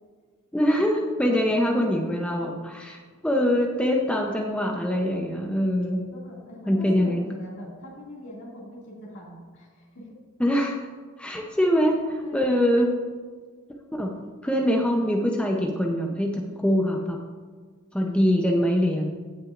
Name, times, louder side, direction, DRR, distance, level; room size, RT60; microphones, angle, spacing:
voice 1, 0.5-6.0 6.7-7.2 10.4-10.8 11.2-12.9 13.9-14.1 14.4-17.2 17.9-19.1, equal, 5° left, 0 dB, 0.6 m, -23 dB
voice 2, 6.1-10.1 12.2-12.7, equal, 60° left, -5 dB, 2.3 m, -42 dB
16.5 x 6.1 x 2.5 m, 1.5 s
head